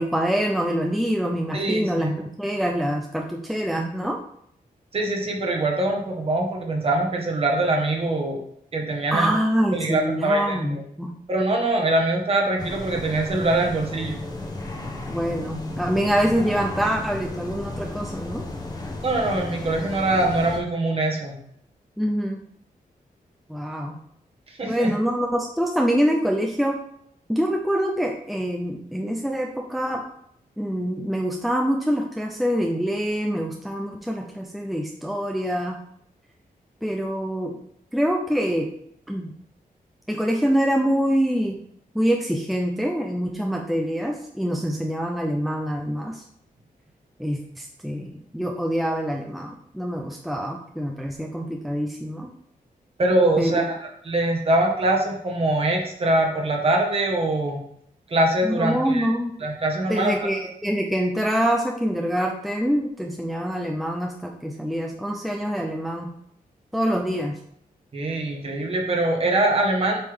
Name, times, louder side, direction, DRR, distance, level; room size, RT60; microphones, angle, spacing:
voice 1, 0.0-2.1 2.4-4.2 9.1-11.1 15.1-18.4 22.0-22.4 23.5-24.0 24.6-26.8 27.3-30.0 30.6-35.8 36.8-37.6 37.9-38.7 39.1-39.3 40.1-41.6 41.9-46.2 47.2-52.3 53.4-53.6 58.4-59.3 59.8-66.1 66.7-67.4, equal, ahead, 1 dB, 0.5 m, -25 dB
voice 2, 1.5-2.2 4.9-8.4 8.7-9.3 9.7-10.8 11.3-14.2 19.0-21.4 24.5-24.9 53.0-57.6 58.1-59.1 59.4-60.3 67.9-70.0, right 2 dB, 40° right, 0 dB, 1.6 m, -23 dB
sound 1, 12.6-20.6, left 2 dB, 25° left, 1.0 m, -33 dB
7.6 x 5.3 x 3.6 m, 0.70 s
wide cardioid pair, 170°, 15 cm